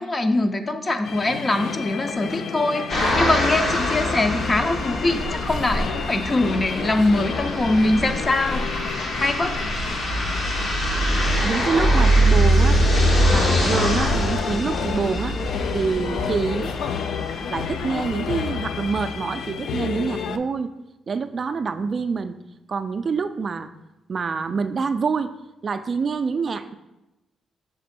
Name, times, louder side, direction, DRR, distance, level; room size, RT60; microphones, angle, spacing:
voice 1, 0.0-2.9 3.1-8.6 9.2-9.6, left 2 dB, 30° left, 8 dB, 0.5 m, -22 dB
sound 1, 1.0-20.4, left 7 dB, 75° left, 0.3 m, -31 dB
sound 2, 2.9-19.0, equal, 55° left, 1.2 m, -23 dB
voice 2, 11.4-12.8 13.3-15.4 15.7-16.7 17.5-20.7 21.1-22.4 22.7-23.7 24.1-25.3 25.6-26.7, right 5 dB, 45° right, 10 dB, 0.3 m, -26 dB
6.0 x 3.7 x 4.3 m, 0.97 s
cardioid pair, 85°, 0 cm